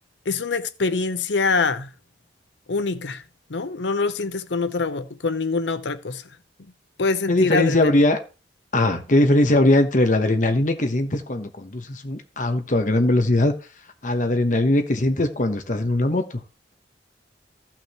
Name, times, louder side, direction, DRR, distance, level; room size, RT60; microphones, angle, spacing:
voice 1, 0.3-1.9 2.7-3.2 3.5-6.2 7.0-7.9, left 4 dB, 90° left, 0.8 m, -24 dB
voice 2, 7.3-8.2 8.7-13.5 14.0-16.4, left 1 dB, 45° left, 1.1 m, -20 dB
15.0 x 5.9 x 3.0 m
head